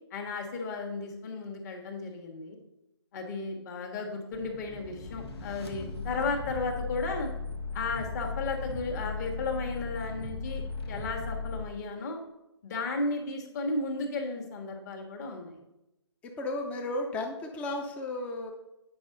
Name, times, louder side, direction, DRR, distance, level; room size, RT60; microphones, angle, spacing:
voice 1, 0.1-2.6 3.1-7.3 7.7-12.2 12.6-15.6, left 3 dB, 35° left, 1 dB, 1.5 m, -34 dB
sound 1, 4.3-11.6, left 3 dB, 60° left, 1.3 m, -37 dB
voice 2, 16.4-18.5, left 2 dB, 10° left, 3 dB, 0.6 m, -34 dB
8.6 x 5.6 x 3.8 m, 0.90 s
hypercardioid pair, 150°, 15 cm